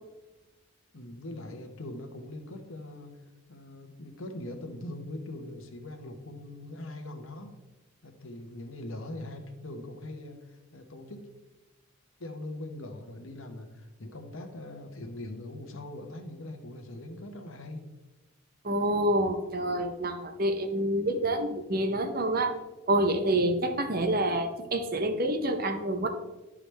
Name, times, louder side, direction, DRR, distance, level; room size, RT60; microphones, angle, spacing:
voice 1, 0.9-3.2 3.5-7.6 8.0-11.3 12.2-17.8, left 1 dB, 75° left, 5 dB, 1.1 m, -41 dB
voice 2, 18.6-22.6 22.9-26.1, right 1 dB, 45° right, 6 dB, 0.8 m, -27 dB
12.0 x 4.9 x 3.4 m, 1.1 s
head